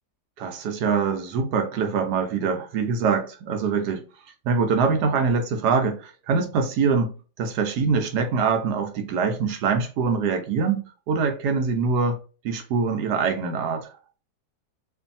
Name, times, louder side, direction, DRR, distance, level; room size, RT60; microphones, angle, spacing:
voice 1, 0.4-4.0 4.4-12.2 12.4-13.9, right 5 dB, 75° right, 1.2 m, -24 dB
2.7 x 2.6 x 2.5 m
omnidirectional pair, 1.8 m